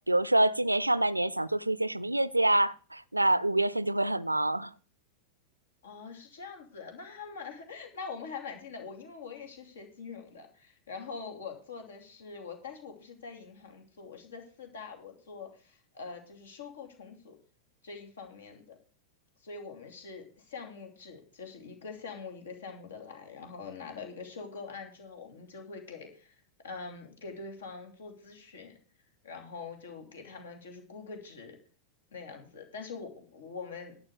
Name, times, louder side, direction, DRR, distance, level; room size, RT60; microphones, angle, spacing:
voice 1, 0.1-4.7, right 1 dB, 85° right, 0.4 m, -26 dB
voice 2, 5.8-17.3 17.8-18.8 19.4-28.8 29.2-31.6 32.1-34.0, left 5 dB, 65° left, 2.8 m, -44 dB
11.5 x 5.5 x 8.1 m
figure-of-eight pair, 90°, 0 cm